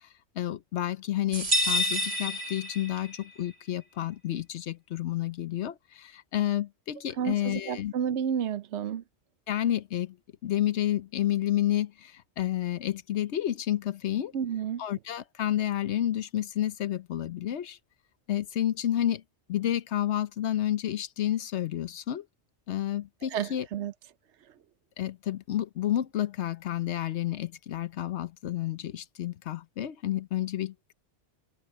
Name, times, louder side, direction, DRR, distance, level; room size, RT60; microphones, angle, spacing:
voice 1, 0.4-7.9 9.5-10.2 10.4-14.3 14.8-17.8 18.3-19.2 19.5-22.2 22.7-23.7 25.0-30.9, left 12 dB, 80° left, 1.1 m, -30 dB
sound 1, 1.3-3.3, left 1 dB, 65° right, 2.1 m, -28 dB
voice 2, 7.2-9.0 14.3-14.8 23.3-23.9, right 8 dB, 90° right, 1.0 m, -31 dB
omnidirectional pair, 1.1 m